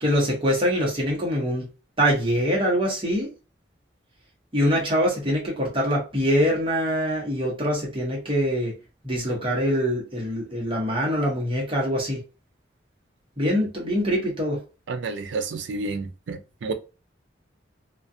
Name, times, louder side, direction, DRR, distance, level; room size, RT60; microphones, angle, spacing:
voice 1, 0.0-1.7 2.0-3.3 4.5-8.7 9.0-12.2 13.4-14.6, equal, 25° right, 0.9 m, -24 dB
voice 2, 14.9-16.7, right 3 dB, 70° right, 0.4 m, -30 dB
2.4 x 2.2 x 2.6 m
head